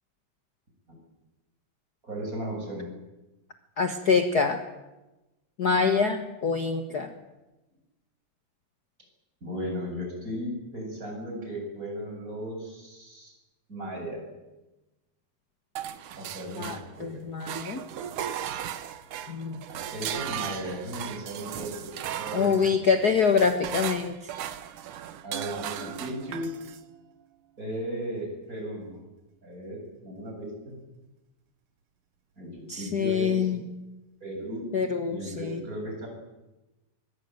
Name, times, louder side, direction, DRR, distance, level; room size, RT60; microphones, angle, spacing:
voice 1, 2.0-2.9 9.4-13.3 13.7-14.2 16.2-17.2 19.7-22.5 23.0-23.1 25.2-26.5 27.6-29.0 29.4-30.7 32.4-32.5 32.8-33.5 34.2-34.7 35.1-36.1, equal, 20° right, 0 dB, 8.4 m, -36 dB
voice 2, 3.8-4.6 5.6-7.1 16.6-17.8 19.3-19.6 22.3-24.3 32.7-33.6 34.7-35.6, left 5 dB, 50° left, 6 dB, 1.1 m, -25 dB
sound 1, 15.8-17.1 17.4-26.8, right 10 dB, 70° right, 2.6 m, -37 dB
23.0 x 22.0 x 9.2 m, 1.1 s
omnidirectional pair, 3.9 m